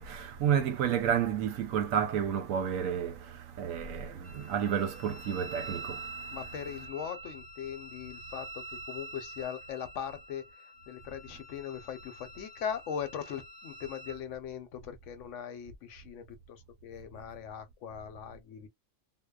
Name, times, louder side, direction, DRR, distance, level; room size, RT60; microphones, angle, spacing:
voice 1, 0.0-6.4, right 8 dB, 90° right, 1.1 m, -31 dB
Wind instrument woodwind instrument, 4.2-14.2, right 2 dB, 55° right, 1.1 m, -46 dB
voice 2, 6.3-18.7, left 8 dB, 75° left, 0.9 m, -40 dB
2.8 x 2.0 x 2.2 m
omnidirectional pair, 1.4 m